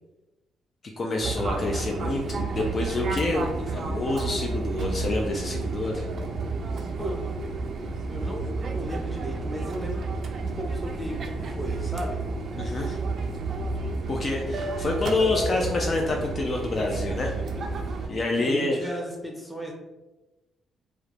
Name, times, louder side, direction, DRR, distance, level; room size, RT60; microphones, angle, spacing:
voice 1, 1.0-6.1 12.6-13.0 14.1-17.3 18.1-18.9, left 2 dB, 40° left, 0 dB, 0.4 m, -27 dB
Fixed-wing aircraft airplane, 1.2-18.1, right 3 dB, 55° right, 0.3 m, -31 dB
voice 2, 8.1-10.1 10.4-12.2 18.0-18.1 18.4-19.7, equal, ahead, -1 dB, 0.6 m, -35 dB
2.3 x 2.1 x 3.2 m, 1.1 s
cardioid pair, 90°, 0 cm